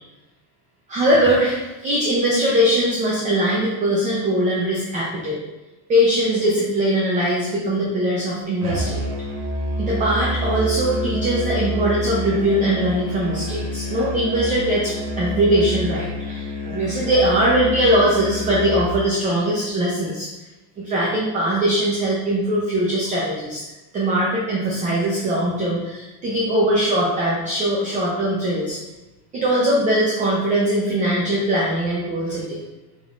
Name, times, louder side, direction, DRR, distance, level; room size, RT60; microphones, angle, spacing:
voice 1, 0.9-5.4 5.9-9.1 9.8-20.3 20.8-23.6 23.9-28.8 29.3-32.6, right 1 dB, 15° right, -5 dB, 0.4 m, -21 dB
Musical instrument, 8.6-19.0, left 1 dB, 85° right, 1.0 m, -28 dB
5.3 x 3.5 x 2.3 m, 1.1 s
supercardioid pair, 140°, 50 cm